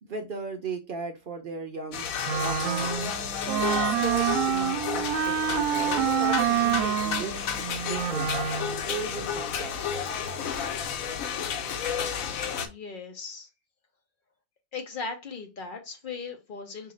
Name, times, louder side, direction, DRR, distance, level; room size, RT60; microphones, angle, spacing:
voice 1, 0.0-2.1 2.4-2.9 3.5-7.4 7.7-8.4 8.8-9.9, right 3 dB, 55° right, 3 dB, 0.6 m, -37 dB
sound 1, 1.9-12.7, left 7 dB, 90° left, 1.0 m, -32 dB
Wind instrument woodwind instrument, 2.3-8.8, right 9 dB, 80° right, 1.0 m, -27 dB
Mechanisms, 5.0-11.2, left 4 dB, 65° left, 1.1 m, -46 dB
voice 2, 12.6-13.5 14.7-16.9, left 4 dB, 45° left, 4 dB, 0.8 m, -38 dB
3.1 x 2.8 x 3.8 m, 0.26 s
omnidirectional pair, 1.4 m